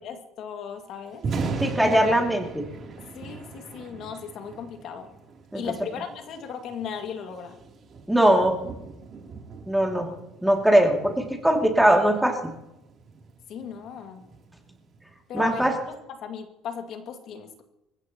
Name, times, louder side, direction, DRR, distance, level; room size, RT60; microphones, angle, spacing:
voice 1, 0.0-1.2 1.8-2.0 3.1-5.1 5.5-7.6 13.5-14.2 15.3-17.6, left 7 dB, 55° left, 4 dB, 2.1 m, -36 dB
Thunder, 1.1-15.2, right 4 dB, 35° right, 3.1 m, -39 dB
voice 2, 1.6-2.6 5.5-5.6 8.1-8.6 9.7-10.1 10.4-12.4 15.3-15.8, right 1 dB, 5° right, 1 dB, 2.5 m, -20 dB
28.0 x 15.5 x 3.0 m, 0.91 s
cardioid pair, 145°, 0 cm